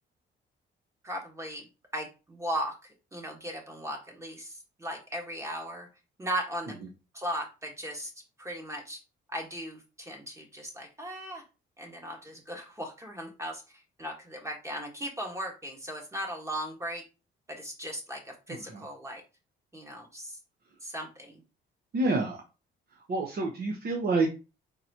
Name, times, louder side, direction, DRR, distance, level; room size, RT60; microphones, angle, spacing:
voice 1, 1.0-1.7 1.9-2.8 3.1-5.9 6.2-6.7 7.1-8.1 8.4-9.0 9.3-11.4 11.8-13.6 14.0-17.0 17.5-19.2 19.7-20.4 20.8-21.4 22.1-22.2, equal, 15° right, 2 dB, 1.4 m, -37 dB
voice 2, 21.9-22.4 23.1-24.3, right 2 dB, 50° right, 2 dB, 1.0 m, -27 dB
4.4 x 3.9 x 2.8 m, 0.31 s
cardioid pair, 90°, 20 cm